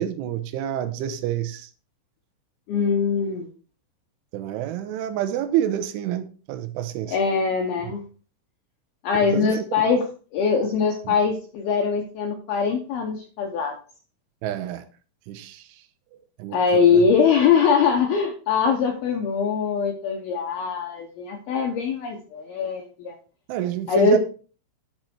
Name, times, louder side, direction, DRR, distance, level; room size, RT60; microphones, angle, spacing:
voice 1, 0.0-1.7 4.3-7.2 7.9-8.0 9.2-9.6 11.1-11.2 14.4-14.8 15.3-15.7 16.4-17.0 23.5-24.2, right 10 dB, 80° right, 3.1 m, -28 dB
voice 2, 2.7-3.5 7.1-8.0 9.0-10.0 10.3-13.7 16.5-23.2 23.9-24.2, left 6 dB, 80° left, 2.2 m, -22 dB
10.5 x 6.3 x 4.4 m
omnidirectional pair, 5.8 m